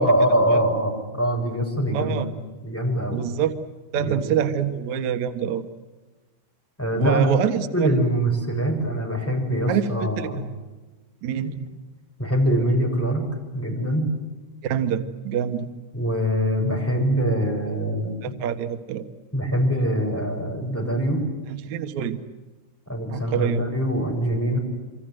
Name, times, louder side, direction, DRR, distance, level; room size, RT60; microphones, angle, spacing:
voice 1, 0.0-2.3 2.6-3.2 3.9-4.3 6.8-7.3 7.7-10.4 11.4-11.5 12.2-13.2 13.5-14.1 15.9-18.1 19.3-21.2 22.9-24.6, equal, 5° left, 1 dB, 6.6 m, -23 dB
voice 2, 1.9-2.3 3.1-3.5 3.9-5.6 7.0-7.9 9.7-10.3 11.2-11.6 14.6-15.7 18.2-19.0 21.5-22.2 23.1-23.6, right 9 dB, 65° right, 7 dB, 1.9 m, -26 dB
28.0 x 25.5 x 7.8 m, 1.2 s
omnidirectional pair, 5.6 m